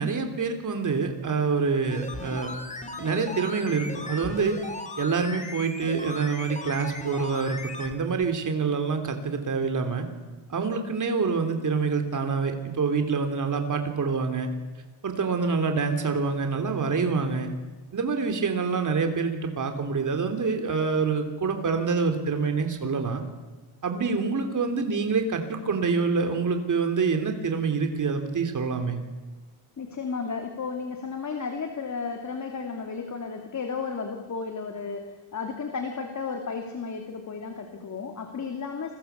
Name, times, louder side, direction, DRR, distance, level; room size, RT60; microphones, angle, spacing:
voice 1, 0.0-2.6 3.0-4.6 5.0-10.0 10.5-14.5 15.0-17.5 17.9-23.2 23.8-29.0, right 5 dB, 40° right, 5 dB, 3.4 m, -26 dB
sound 1, 1.9-7.9 8.2-8.3, left 2 dB, 15° left, 2.7 m, -37 dB
voice 2, 29.8-38.9, left 5 dB, 35° left, 4 dB, 2.8 m, -33 dB
29.5 x 21.5 x 8.3 m, 1.3 s
wide cardioid pair, 170°, 47 cm